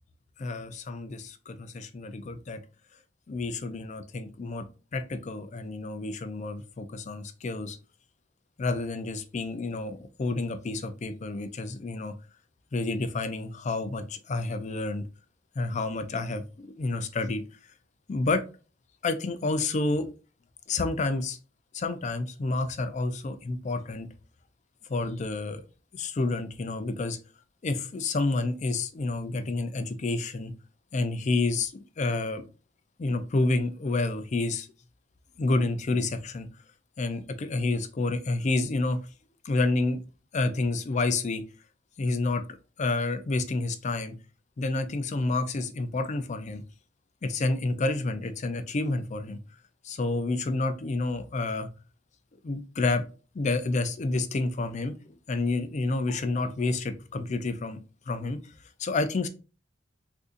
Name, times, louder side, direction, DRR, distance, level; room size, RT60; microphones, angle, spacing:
voice 1, 0.4-2.6 3.3-4.7 4.9-7.8 8.6-12.1 12.7-15.0 15.6-17.4 18.1-18.4 19.0-20.1 20.7-21.4 21.7-24.1 24.9-25.6 25.9-27.2 27.6-30.5 30.9-32.4 33.0-34.7 35.4-36.5 37.0-39.0 39.4-40.0 40.3-41.4 42.0-42.4 42.8-44.1 44.6-46.6 47.2-49.4 49.8-51.7 52.4-53.0 53.3-54.9 55.3-57.8 58.1-58.4 58.8-59.3, left 3 dB, 35° left, 0.4 m, -29 dB
3.7 x 2.6 x 2.5 m
head